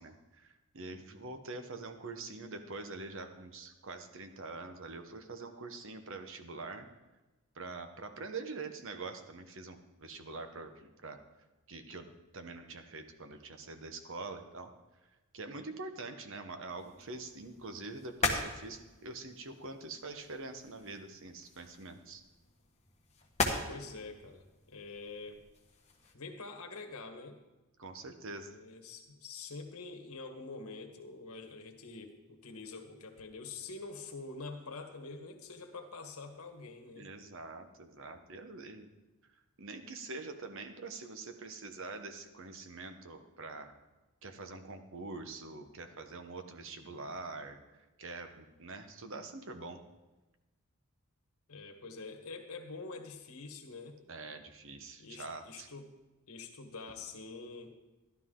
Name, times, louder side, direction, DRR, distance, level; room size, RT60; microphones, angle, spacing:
voice 1, 0.0-6.9 7.5-11.2 11.7-12.1 12.3-14.7 15.3-22.2 27.8-28.6 37.0-38.9 39.6-43.7 44.2-47.6 48.0-49.8 54.1-55.7, right 3 dB, 60° right, 7 dB, 1.1 m, -45 dB
sound 1, 16.8-26.2, left 2 dB, 30° left, 1.4 m, -40 dB
voice 2, 23.7-25.4 26.1-27.4 28.3-37.1 51.5-54.0 55.0-55.9 56.3-57.7, left 3 dB, 85° left, 4 dB, 1.4 m, -46 dB
12.5 x 12.0 x 3.8 m, 1.1 s
head